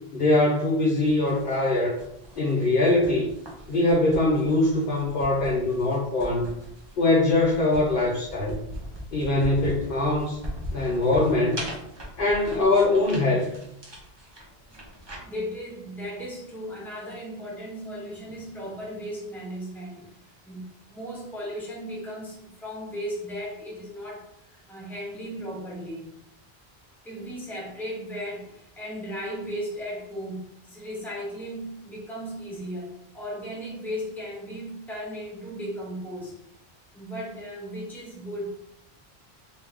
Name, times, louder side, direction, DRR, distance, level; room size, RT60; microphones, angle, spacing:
voice 1, 0.1-2.0 2.4-3.3 3.7-6.5 7.0-8.6 9.1-10.4 10.7-11.6 12.2-13.5, left 2 dB, 60° left, -3 dB, 0.8 m, -22 dB
sound 1, 1.0-15.2, equal, 30° right, 0.8 m, -40 dB
voice 2, 14.7-20.1 20.5-26.2 27.0-32.9 33.1-36.4 36.9-38.5, equal, ahead, -4 dB, 0.9 m, -36 dB
3.5 x 2.6 x 3.4 m, 0.76 s
omnidirectional pair, 1.1 m